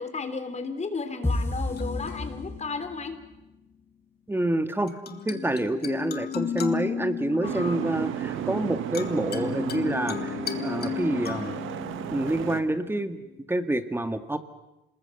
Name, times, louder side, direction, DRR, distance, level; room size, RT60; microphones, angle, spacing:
voice 1, 0.0-3.2 7.4-7.8, left 4 dB, 35° left, 9 dB, 3.4 m, -34 dB
sound 1, 1.2-3.1, left 2 dB, 10° left, 4.6 m, -30 dB
sound 2, 1.7-3.5 4.9-13.4, left 7 dB, 55° left, 2.1 m, -35 dB
voice 2, 4.3-11.6 12.1-13.2 13.5-14.4, right 1 dB, 10° right, 9 dB, 2.0 m, -28 dB
Boat Water vehicle, 7.4-12.6, right 10 dB, 80° right, 1.7 m, -33 dB
27.0 x 20.5 x 7.9 m, 0.98 s
cardioid pair, 90°, 20 cm